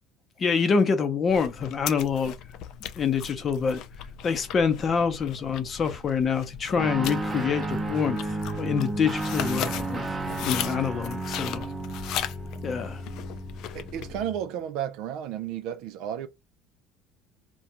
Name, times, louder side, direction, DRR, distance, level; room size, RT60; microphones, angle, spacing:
voice 1, 0.4-2.3 3.0-3.8 4.2-11.7 12.6-13.0, left 6 dB, 40° left, 0.7 m, -26 dB
sound 1, 1.3-14.2, left 10 dB, 65° left, 0.3 m, -38 dB
Guitar, 6.8-14.4, right 2 dB, 20° right, 0.7 m, -33 dB
voice 2, 13.7-16.3, right 10 dB, 70° right, 0.4 m, -33 dB
2.4 x 2.2 x 2.9 m
supercardioid pair, 85°, 0 cm